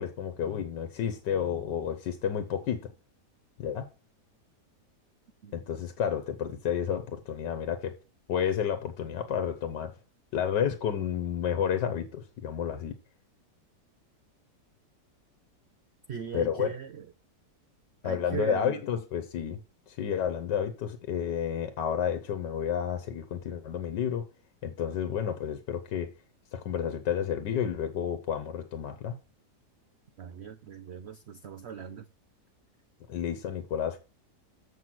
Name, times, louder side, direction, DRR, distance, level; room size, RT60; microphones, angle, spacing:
voice 1, 0.0-2.9 3.6-3.9 5.5-7.9 8.3-9.9 10.3-13.0 16.3-16.7 18.0-19.6 19.9-24.3 24.6-26.1 26.5-29.1 33.1-34.0, left 8 dB, 85° left, 1.5 m, -31 dB
voice 2, 16.1-17.1 18.0-18.8 30.2-32.1, right 8 dB, 75° right, 0.6 m, -39 dB
7.7 x 5.6 x 5.9 m
omnidirectional pair, 1.8 m